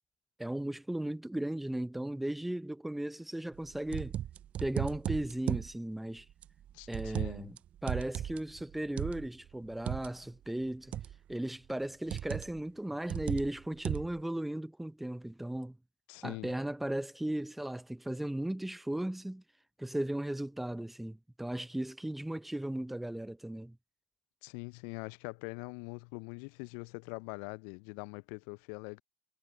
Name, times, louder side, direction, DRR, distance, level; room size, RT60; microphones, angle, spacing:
voice 1, 0.4-4.2 4.6-6.3 6.9-7.6 7.8-10.9 11.3-15.8 16.2-19.4 19.8-23.8, right 1 dB, 5° right, 0.6 m, -36 dB
sound 1, 3.6-5.7 6.4-7.6 7.8-10.1 10.9-11.3 12.1-12.6 13.1-14.2, right 11 dB, 50° right, 0.4 m, -36 dB
voice 2, 6.7-7.5 16.1-16.5 24.4-29.0, left 33 dB, 70° left, 0.3 m, -43 dB
hypercardioid pair, 65°, 3 cm